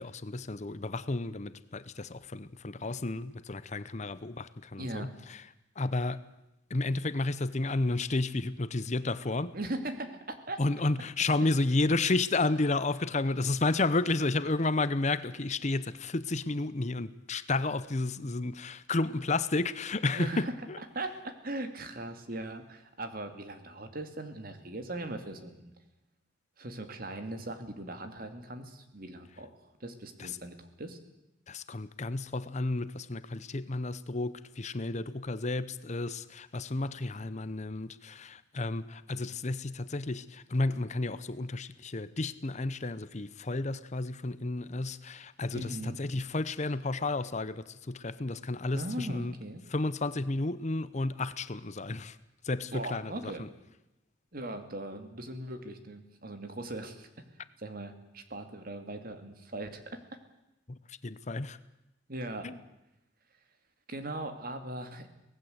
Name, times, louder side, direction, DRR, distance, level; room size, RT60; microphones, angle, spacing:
voice 1, 0.0-5.4 5.8-6.2 6.7-9.5 10.6-20.8 30.2-30.3 31.5-49.3 49.7-52.2 52.4-53.1 53.4-53.5 60.7-60.8 61.0-61.6 62.4-62.6, left 2 dB, 40° left, 0.8 m, -32 dB
voice 2, 4.8-5.1 9.5-10.6 20.1-25.7 26.6-29.5 29.8-31.0 45.5-46.0 48.7-49.6 52.7-53.5 54.3-57.1 57.6-59.8 62.1-62.5 63.9-65.1, right 1 dB, 50° right, 2.6 m, -39 dB
24.5 x 18.5 x 8.1 m
head